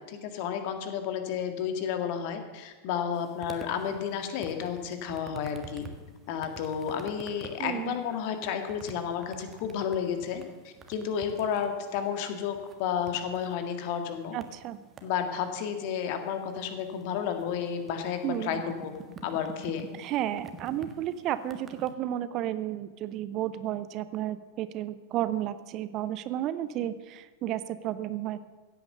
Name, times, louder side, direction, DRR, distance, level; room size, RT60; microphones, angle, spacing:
voice 1, 0.1-5.9 6.3-14.4 15.0-18.9 19.2-19.9, left 8 dB, 45° left, 7 dB, 1.8 m, -32 dB
sound 1, 3.1-21.9, right 3 dB, 20° right, 1.5 m, -49 dB
voice 2, 7.6-7.9 14.3-14.8 18.2-18.6 19.9-28.4, right 12 dB, 35° right, 14 dB, 0.7 m, -32 dB
16.0 x 9.2 x 6.7 m, 1.3 s
figure-of-eight pair, 90°, 0 cm